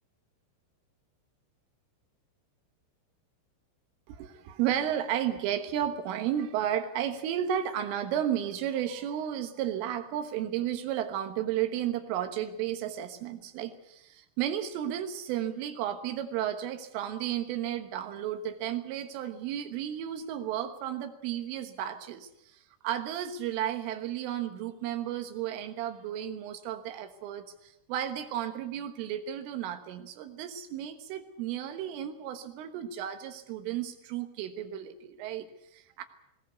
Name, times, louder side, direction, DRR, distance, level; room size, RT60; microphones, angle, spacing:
voice 1, 4.1-35.5 35.7-36.0, right 10 dB, 85° right, 7 dB, 3.9 m, -33 dB
21.0 x 19.0 x 8.2 m, 0.83 s
omnidirectional pair, 5.7 m